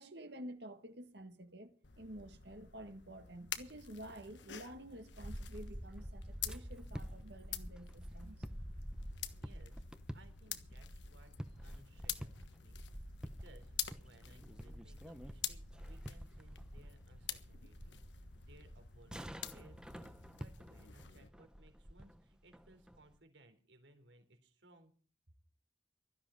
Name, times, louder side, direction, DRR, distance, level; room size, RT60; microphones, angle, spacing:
voice 1, 0.0-8.5, right 1 dB, 65° right, 1.8 m, -50 dB
sound 1, 1.8-21.3, left 10 dB, 80° left, 1.3 m, -48 dB
sound 2, 5.1-23.1, equal, 5° right, 0.8 m, -49 dB
voice 2, 9.1-9.9 10.1-11.3 11.6-24.9, right 1 dB, 85° right, 3.7 m, -64 dB
16.5 x 13.0 x 5.1 m
head